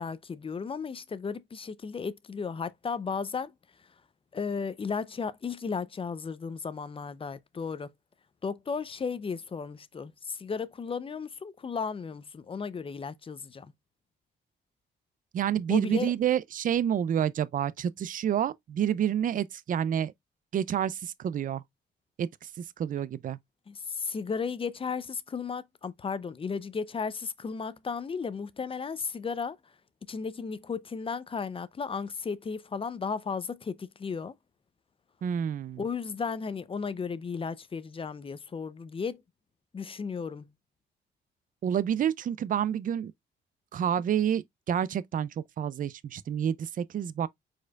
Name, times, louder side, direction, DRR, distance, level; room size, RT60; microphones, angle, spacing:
voice 1, 0.0-3.5 4.3-7.9 8.4-13.7 15.7-16.1 23.7-29.6 30.1-34.3 35.8-39.2 39.7-40.5, left 5 dB, 25° left, 0.5 m, -34 dB
voice 2, 15.3-20.1 20.5-21.6 22.2-23.4 35.2-35.8 41.6-43.1 43.7-47.3, right 9 dB, 45° right, 0.4 m, -29 dB
4.8 x 4.3 x 2.3 m
cardioid pair, 90°, 20 cm